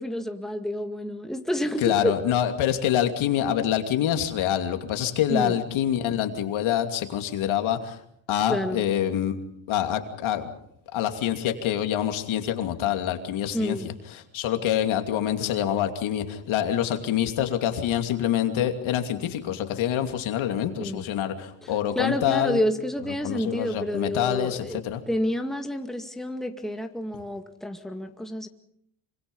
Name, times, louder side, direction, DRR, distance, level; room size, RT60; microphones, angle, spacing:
voice 1, 0.0-2.2 5.3-5.6 8.5-8.8 13.5-13.9 20.8-21.1 21.6-28.5, equal, ahead, 4 dB, 2.0 m, -29 dB
voice 2, 1.8-8.0 8.3-9.4 9.7-10.5 10.9-22.6 23.2-25.0, left 10 dB, 80° left, 6 dB, 2.8 m, -26 dB
26.0 x 25.5 x 5.5 m, 0.71 s
cardioid pair, 130°, 47 cm